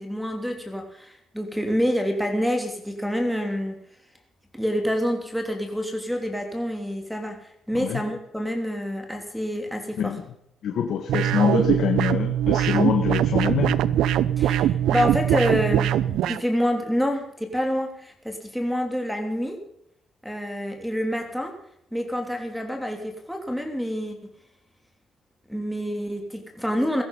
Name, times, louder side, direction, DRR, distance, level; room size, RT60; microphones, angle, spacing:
voice 1, 0.0-3.8 4.5-10.1 14.4-19.6 20.2-21.5 21.9-24.3 25.5-27.0, equal, ahead, 4 dB, 3.2 m, -27 dB
voice 2, 10.6-13.8, left 8 dB, 70° left, 5 dB, 1.5 m, -24 dB
sound 1, 11.1-16.4, right 11 dB, 85° right, 0.6 m, -22 dB
16.5 x 13.5 x 5.5 m, 0.75 s
cardioid pair, 90°, 0 cm